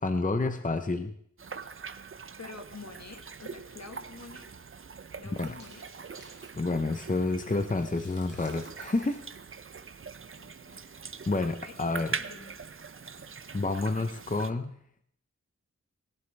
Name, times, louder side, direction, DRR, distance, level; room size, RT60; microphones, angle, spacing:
voice 1, 0.0-1.1 5.4-5.5 6.5-9.3 11.3-12.2 13.5-14.8, left 3 dB, 25° left, 8 dB, 0.8 m, -29 dB
sound 1, 1.4-14.5, right 5 dB, 45° right, 0.6 m, -43 dB
voice 2, 2.4-4.5 5.1-5.9 10.2-10.9 11.4-12.6, left 3 dB, 65° left, 6 dB, 1.7 m, -48 dB
sound 2, 5.3-7.0 7.3-7.4 7.6-10.3, left 1 dB, 80° left, 3.5 m, -57 dB
20.0 x 11.0 x 3.4 m, 0.65 s
wide cardioid pair, 60°, 29 cm